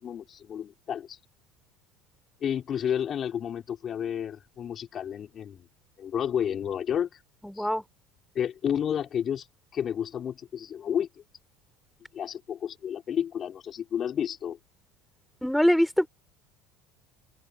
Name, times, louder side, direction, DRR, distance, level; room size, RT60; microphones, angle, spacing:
voice 1, 0.0-1.2 2.4-5.7 6.0-7.2 7.6-7.7 8.3-9.4 9.7-11.1 12.1-14.6, left 9 dB, 40° left, 5.0 m, -31 dB
voice 2, 7.4-7.8 15.4-16.1, equal, ahead, 4.0 m, -23 dB
open air
hypercardioid pair, 90°, 0 cm